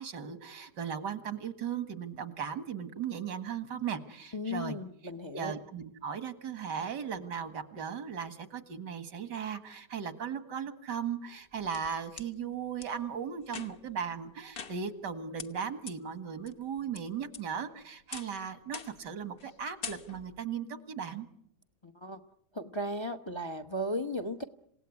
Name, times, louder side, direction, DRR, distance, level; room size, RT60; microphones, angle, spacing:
voice 1, 0.0-4.8 5.3-21.3, right 7 dB, 90° right, 11 dB, 2.3 m, -37 dB
voice 2, 4.3-5.6 21.8-22.2 22.5-24.4, equal, 20° left, 9 dB, 0.9 m, -36 dB
sound 1, 11.3-12.3 12.8-12.9 13.4-14.0 14.5-15.1 15.4-15.5 15.9-16.0 16.5-17.0 17.3-17.7 18.1-18.4 18.7-19.1 19.4-19.5 19.8-20.4, left 5 dB, 35° left, 1.2 m, -43 dB
27.5 x 17.5 x 9.7 m, 0.71 s
omnidirectional pair, 1.8 m